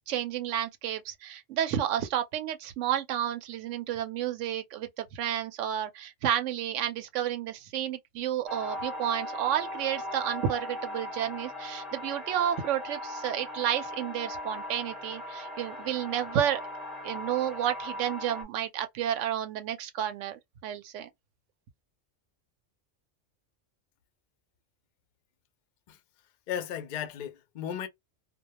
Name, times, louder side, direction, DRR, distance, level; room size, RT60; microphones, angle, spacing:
voice 1, 0.1-16.6 17.0-21.1, right 10 dB, 75° right, 0.9 m, -31 dB
sound 1, 8.5-18.4, left 1 dB, ahead, 0.7 m, -39 dB
voice 2, 26.5-27.9, left 9 dB, 60° left, 0.5 m, -35 dB
2.2 x 2.1 x 2.8 m
omnidirectional pair, 1.3 m